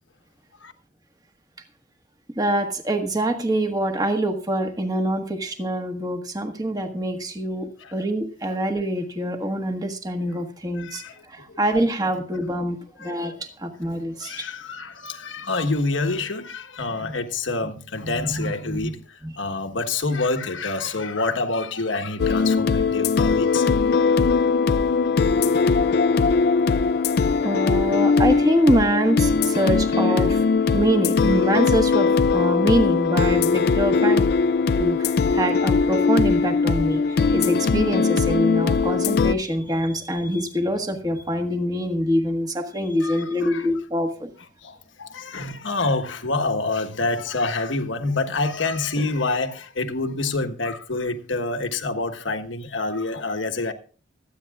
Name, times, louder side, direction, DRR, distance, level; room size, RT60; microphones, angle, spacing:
voice 1, 2.3-14.4 17.0-17.1 18.0-18.9 19.2-19.3 27.4-34.3 34.8-44.3, right 1 dB, 20° right, 1.5 m, -25 dB
voice 2, 10.8-11.6 13.0-13.4 14.2-23.7 23.9-24.2 43.0-43.7 44.6-53.7, left 3 dB, 85° left, 1.4 m, -27 dB
sound 1, 22.2-39.3, left 4 dB, 55° left, 0.4 m, -20 dB
25.0 x 9.3 x 2.4 m
head